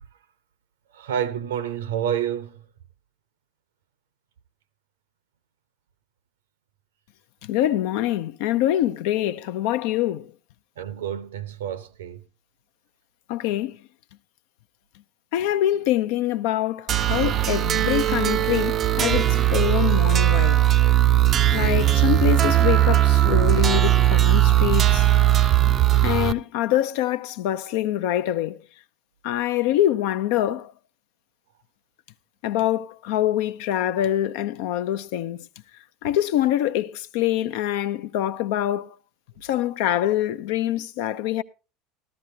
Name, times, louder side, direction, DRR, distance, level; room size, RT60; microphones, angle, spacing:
voice 1, 0.9-2.6 10.8-12.2, right 9 dB, 70° right, 0.8 m, -29 dB
voice 2, 7.4-10.3 13.3-13.8 15.3-20.6 21.5-25.0 26.0-28.6 29.2-30.7 32.4-35.4 36.0-38.9 39.4-41.4, left 13 dB, 60° left, 0.5 m, -25 dB
sound 1, 16.9-26.3, right 13 dB, 40° right, 0.5 m, -19 dB
13.5 x 13.5 x 2.7 m
figure-of-eight pair, 70°, 0 cm